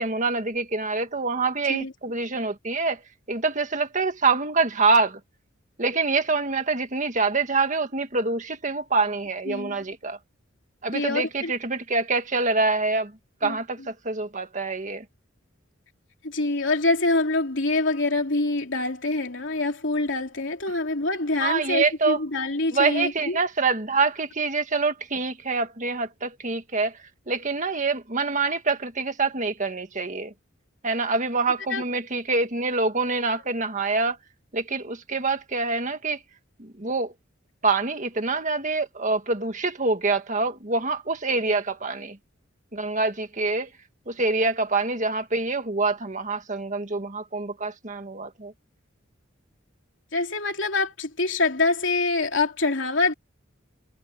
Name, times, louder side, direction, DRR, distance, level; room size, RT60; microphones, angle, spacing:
voice 1, 0.0-3.0 3.3-5.2 5.8-10.2 10.8-13.1 13.4-15.0 21.4-22.2 22.7-27.0 27.3-30.3 30.8-34.2 34.5-36.2 36.6-37.1 37.6-42.2 42.7-43.7 44.1-48.5, right 3 dB, 40° right, 1.9 m, -25 dB
voice 2, 10.9-11.5 13.4-13.6 16.2-23.4 31.7-31.8 50.1-53.1, left 3 dB, 65° left, 3.5 m, -25 dB
head